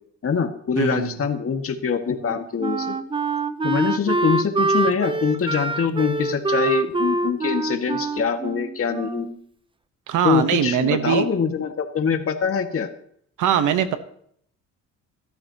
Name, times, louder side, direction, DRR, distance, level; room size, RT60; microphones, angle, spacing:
voice 1, 0.2-2.9 3.6-9.3 10.2-12.9, left 6 dB, 50° left, 5 dB, 1.9 m, -24 dB
voice 2, 0.8-1.2 10.1-11.3 13.4-14.0, right 9 dB, 85° right, 10 dB, 1.1 m, -21 dB
Wind instrument woodwind instrument, 2.2-9.4, right 3 dB, 15° right, 0.7 m, -25 dB
17.0 x 13.0 x 3.0 m, 0.65 s
cardioid pair, 90°, 30 cm